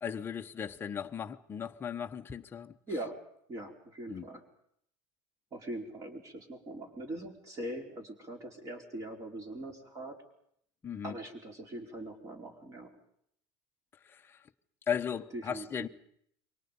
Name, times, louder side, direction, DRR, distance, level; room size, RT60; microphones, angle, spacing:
voice 1, 0.0-2.7 4.1-4.2 10.8-11.2 14.0-14.4 14.9-15.9, left 8 dB, 15° left, 1.0 m, -37 dB
voice 2, 2.9-3.2 3.5-4.4 5.5-10.2 11.0-12.9 15.3-15.7, right 1 dB, 25° right, 4.8 m, -41 dB
28.5 x 24.5 x 5.5 m
cardioid pair, 170°, 13 cm